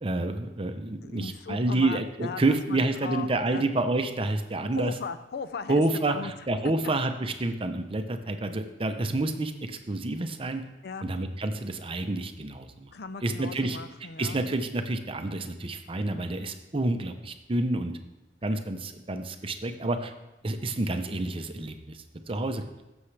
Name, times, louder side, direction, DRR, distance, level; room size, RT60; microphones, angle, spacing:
voice 1, 0.0-4.9 5.7-10.6 11.0-12.9 13.2-13.8 14.2-17.9 18.4-20.1 20.4-22.6, right 2 dB, 30° right, 7 dB, 0.7 m, -29 dB
voice 2, 1.0-3.6 4.7-5.8 6.1-6.3 10.8-11.1 12.9-14.5 18.5-18.6 19.8-19.9, left 5 dB, 65° left, 13 dB, 0.5 m, -38 dB
15.5 x 7.2 x 3.3 m, 1.0 s
head